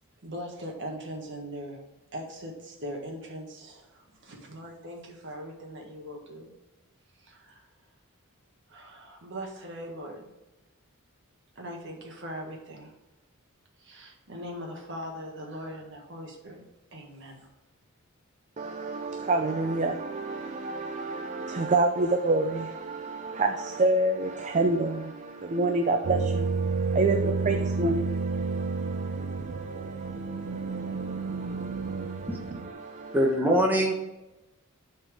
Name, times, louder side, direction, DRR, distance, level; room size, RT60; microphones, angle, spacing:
voice 1, 0.2-1.8 2.1-6.5 7.2-7.7 8.7-10.3 11.5-13.0 13.8-16.6 16.9-17.5, equal, 55° right, 1.7 m, -40 dB
voice 2, 18.6-33.2, right 2 dB, 30° right, 0.4 m, -29 dB
sound 1, 26.0-32.7, right 4 dB, 85° right, 0.6 m, -30 dB
voice 3, 33.1-33.9, equal, 10° right, 1.1 m, -23 dB
11.5 x 4.5 x 3.5 m
head